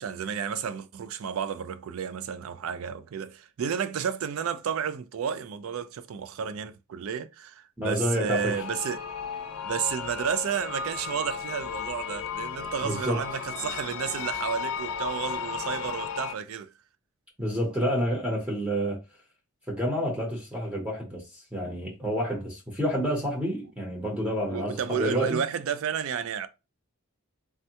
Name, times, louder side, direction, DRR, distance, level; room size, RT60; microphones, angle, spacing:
voice 1, 0.0-9.0 9.6-16.7 24.5-26.5, right 7 dB, 70° right, 0.3 m, -32 dB
voice 2, 7.8-8.6 12.8-13.2 17.4-19.0 19.7-25.4, equal, 5° right, 0.8 m, -29 dB
sound 1, 8.3-16.3, left 6 dB, 75° left, 0.5 m, -35 dB
3.4 x 2.2 x 2.8 m
head